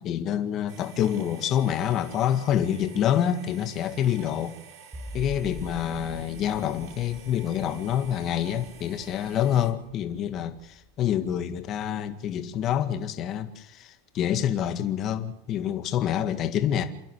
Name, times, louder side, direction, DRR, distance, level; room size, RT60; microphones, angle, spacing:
voice 1, 0.0-4.5 5.1-16.8, left 10 dB, 35° left, 1.8 m, -27 dB
sound 1, 0.7-9.7, right 7 dB, 50° right, 3.6 m, -49 dB
sound 2, 4.9-12.1, right 2 dB, 10° right, 1.3 m, -45 dB
28.0 x 11.0 x 9.6 m
supercardioid pair, 150°, 0 cm